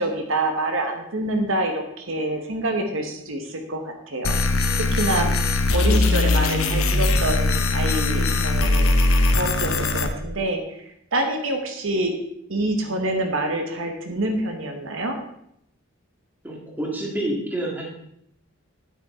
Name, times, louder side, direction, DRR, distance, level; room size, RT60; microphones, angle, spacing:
voice 1, 0.0-4.4 4.8-5.3 5.7-12.1 12.5-15.2, right 1 dB, 70° right, 4 dB, 1.2 m, -26 dB
sound 1, 4.2-10.1, left 2 dB, 80° left, 0.9 m, -20 dB
voice 2, 16.4-17.9, right 1 dB, 10° right, -2 dB, 1.9 m, -28 dB
9.4 x 8.4 x 3.7 m, 0.75 s
head